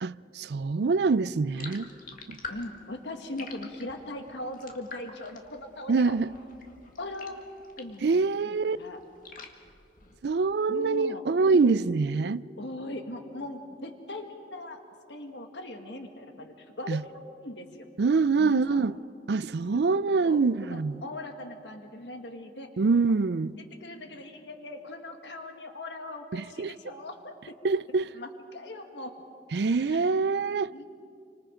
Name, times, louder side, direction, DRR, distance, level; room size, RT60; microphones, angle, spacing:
voice 1, 0.0-1.9 2.3-2.4 5.9-6.3 8.0-8.8 10.2-12.4 16.9-17.0 18.0-18.9 19.3-21.0 22.8-23.5 26.3-26.7 27.6-28.1 29.5-30.7, right 4 dB, 65° right, 0.4 m, -25 dB
sound 1, 1.5-8.1 8.4-10.5, left 4 dB, 50° left, 1.9 m, -47 dB
voice 2, 2.5-6.1 7.0-7.5 7.8-9.0 10.7-11.2 11.5-11.8 12.6-14.8 15.1-17.1 17.4-17.9 18.4-18.8 19.7-20.4 20.7-22.7 23.8-27.4 28.1-29.1 29.8-30.4 30.7-30.8, left 1 dB, 75° left, 1.7 m, -40 dB
28.5 x 25.0 x 5.1 m
head